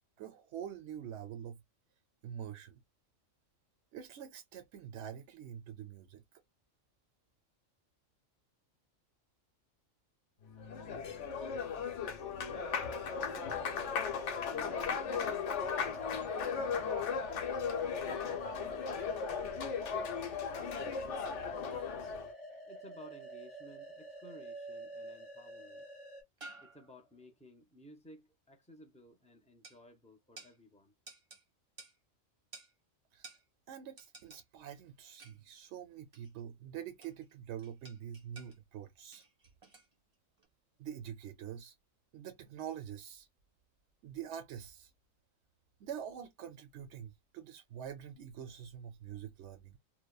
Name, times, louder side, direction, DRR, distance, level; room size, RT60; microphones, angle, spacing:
voice 1, 0.2-1.6 2.2-2.8 3.9-6.2 33.1-33.3 33.7-39.2 40.8-41.7 42.1-43.3 44.0-44.9 45.8-49.8, right 9 dB, 65° right, 0.8 m, -45 dB
Applause, 10.5-22.3, left 6 dB, 65° left, 1.0 m, -37 dB
voice 2, 12.2-17.2 18.0-21.7 22.7-25.8 26.6-30.9, left 1 dB, 10° left, 0.4 m, -57 dB
sound 1, 12.5-26.2, equal, 30° left, 1.0 m, -47 dB
sound 2, 24.2-24.6 25.8-25.9 26.4-27.2 29.6-29.8 30.4-30.6 31.1-31.4 31.8-32.0 32.5-32.7 33.2-33.4 34.0-34.4 35.2-35.5 36.1-36.4 37.0-37.3 37.6-38.6 39.1-39.9 40.4-40.5, right 3 dB, 30° right, 0.8 m, -54 dB
2.8 x 2.1 x 2.3 m
omnidirectional pair, 1.4 m